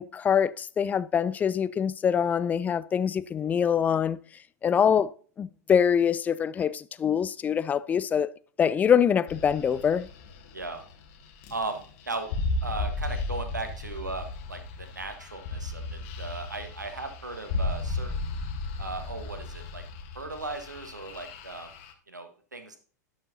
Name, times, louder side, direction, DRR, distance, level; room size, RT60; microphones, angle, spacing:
voice 1, 0.0-4.2 4.6-5.1 5.4-8.3 8.6-10.1, left 8 dB, 15° left, 0.3 m, -24 dB
sound 1, 9.3-21.9, left 2 dB, 50° left, 1.3 m, -35 dB
voice 2, 11.5-12.3 12.6-18.4 18.8-19.8 20.1-21.7 22.1-22.8, right 3 dB, 85° right, 1.4 m, -37 dB
11.5 x 6.3 x 2.7 m
figure-of-eight pair, 95°, 9 cm